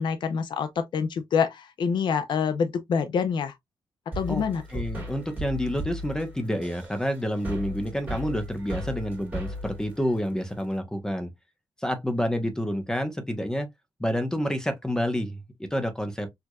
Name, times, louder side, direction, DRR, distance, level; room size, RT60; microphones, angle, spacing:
voice 1, 0.0-3.5 4.1-4.8, left 6 dB, 65° left, 0.5 m, -26 dB
sound 1, 4.1-10.8, equal, 15° right, 1.7 m, -36 dB
voice 2, 4.7-11.3 11.8-13.7 14.0-16.3, equal, 5° left, 0.7 m, -28 dB
4.5 x 2.5 x 2.3 m
wide cardioid pair, 145°, 9 cm